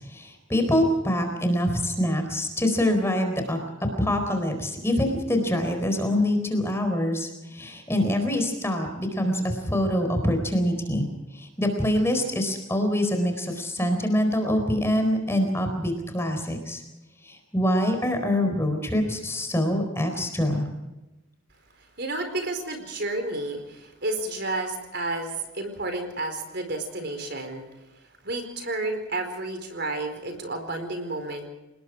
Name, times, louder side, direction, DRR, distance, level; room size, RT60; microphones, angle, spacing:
voice 1, 0.0-3.6 4.0-11.1 11.3-16.8 17.3-20.7, left 1 dB, 10° left, 5 dB, 4.3 m, -25 dB
voice 2, 22.0-27.6 28.2-31.5, right 2 dB, 55° right, 6 dB, 4.5 m, -31 dB
29.5 x 20.0 x 4.8 m, 1.0 s
head